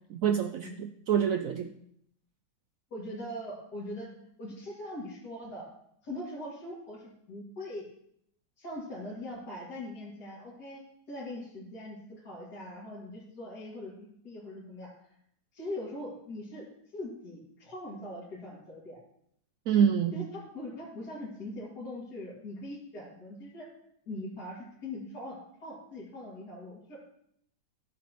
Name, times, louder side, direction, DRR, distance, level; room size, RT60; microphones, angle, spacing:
voice 1, 0.1-1.7 19.7-20.3, right 8 dB, 75° right, 7 dB, 0.8 m, -27 dB
voice 2, 2.9-4.1 4.4-5.6 6.0-7.8 8.6-10.8 11.1-14.9 15.5-16.6 16.9-19.0 20.1-23.7 24.1-27.0, left 1 dB, 65° left, -8 dB, 2.9 m, -41 dB
14.5 x 7.5 x 3.0 m, 0.72 s
omnidirectional pair, 1.9 m